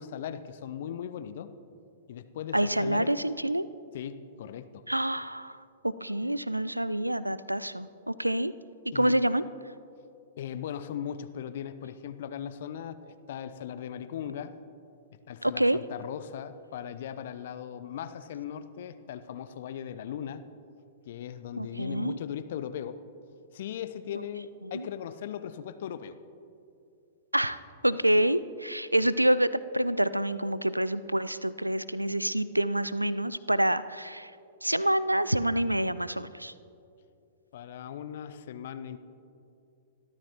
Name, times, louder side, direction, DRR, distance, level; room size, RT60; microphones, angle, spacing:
voice 1, 0.0-1.5 2.1-3.1 3.9-4.8 8.9-9.1 10.4-14.5 15.3-20.4 21.0-23.0 23.5-26.2 37.5-39.0, left 9 dB, 50° left, 12 dB, 0.6 m, -38 dB
voice 2, 2.5-3.7 4.9-5.6 5.8-8.5 8.9-9.4 15.4-15.8 21.6-22.2 24.7-24.9 27.3-34.3 34.6-36.5, right 1 dB, 85° right, 17 dB, 0.4 m, -27 dB
24.5 x 13.0 x 3.0 m, 2.6 s
figure-of-eight pair, 105°, 0 cm